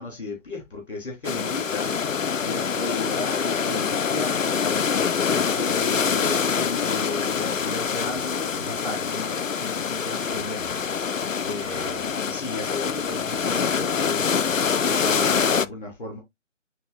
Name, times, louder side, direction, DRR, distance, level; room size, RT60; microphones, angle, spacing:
voice 1, 0.0-10.7 11.4-14.3 14.6-16.2, left 3 dB, 40° left, 3.4 m, -35 dB
sound 1, 1.2-15.7, left 6 dB, 90° left, 0.5 m, -25 dB
9.3 x 3.8 x 2.6 m
figure-of-eight pair, 155°, 38 cm